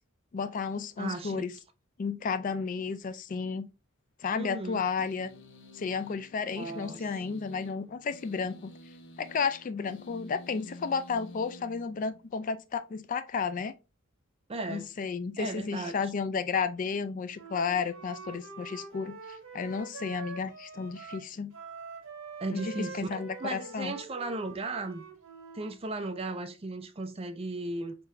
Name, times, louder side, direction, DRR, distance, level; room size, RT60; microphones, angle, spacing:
voice 1, 0.3-1.5 2.0-3.7 4.2-5.3 5.7-8.7 9.2-13.7 14.7-21.5 22.5-24.0, left 5 dB, 40° left, 0.3 m, -32 dB
voice 2, 1.0-1.5 4.3-4.8 6.6-7.0 14.5-14.9 15.4-16.0 22.4-25.0 25.5-28.0, right 2 dB, 30° right, 0.5 m, -36 dB
sound 1, 5.0-12.4, left 1 dB, 65° left, 1.0 m, -50 dB
Wind instrument woodwind instrument, 17.3-25.8, right 4 dB, 75° right, 1.4 m, -45 dB
4.6 x 3.8 x 2.5 m
head